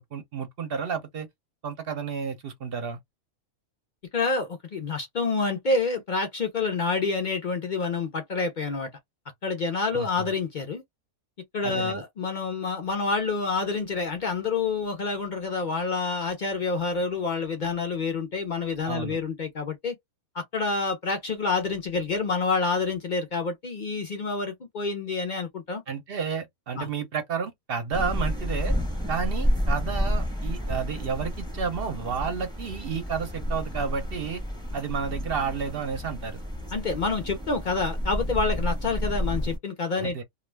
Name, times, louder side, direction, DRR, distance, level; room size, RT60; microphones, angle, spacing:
voice 1, 0.1-1.3 1.6-3.0 9.9-10.3 11.6-12.0 18.9-19.2 25.9-28.7 29.1-34.4 34.7-36.4 39.9-40.2, right 6 dB, 55° right, 0.7 m, -31 dB
voice 2, 4.1-8.9 9.4-10.8 11.5-20.0 20.3-25.8 26.8-26.9 36.7-40.2, left 4 dB, 65° left, 0.4 m, -28 dB
sound 1, 27.9-39.6, equal, 5° left, 0.8 m, -30 dB
2.4 x 2.3 x 3.2 m
omnidirectional pair, 1.5 m